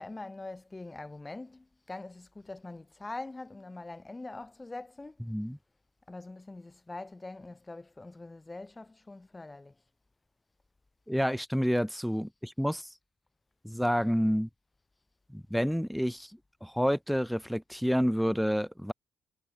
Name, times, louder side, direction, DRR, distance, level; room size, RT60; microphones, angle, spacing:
voice 1, 0.0-5.2 6.1-9.7, left 2 dB, 20° left, 1.4 m, -43 dB
voice 2, 5.3-5.6 11.1-12.9 13.6-14.5 15.3-16.3 16.6-18.9, equal, ahead, 0.6 m, -29 dB
cardioid pair, 90°, 0 cm